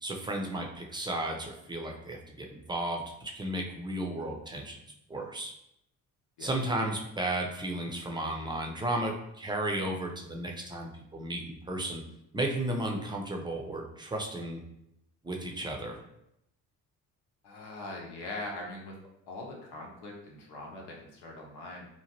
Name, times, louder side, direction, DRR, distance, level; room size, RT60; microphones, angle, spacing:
voice 1, 0.0-4.8 5.1-5.5 6.4-12.0 12.3-14.6 15.2-16.0, right 1 dB, 10° right, 1 dB, 0.6 m, -34 dB
voice 2, 17.4-19.0 19.3-21.9, left 2 dB, 65° left, -1 dB, 0.9 m, -41 dB
2.8 x 2.2 x 2.9 m, 0.78 s
hypercardioid pair, 50°, 44 cm